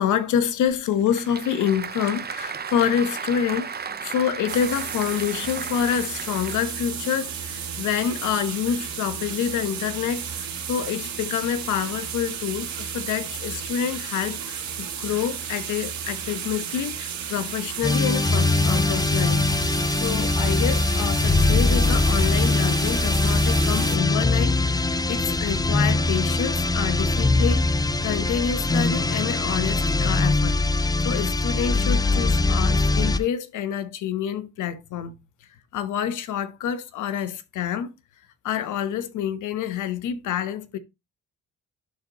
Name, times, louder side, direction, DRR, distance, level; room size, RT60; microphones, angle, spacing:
voice 1, 0.0-19.4 19.9-35.1 35.7-37.9 38.4-40.8, left 9 dB, 85° left, 1.1 m, -27 dB
Applause / Crowd, 0.7-6.9, right 6 dB, 30° right, 0.9 m, -35 dB
sound 1, 4.5-24.0, right 7 dB, 65° right, 2.3 m, -33 dB
sound 2, 17.8-33.3, left 2 dB, 15° left, 0.5 m, -22 dB
11.5 x 4.2 x 3.0 m
cardioid pair, 90°, 30 cm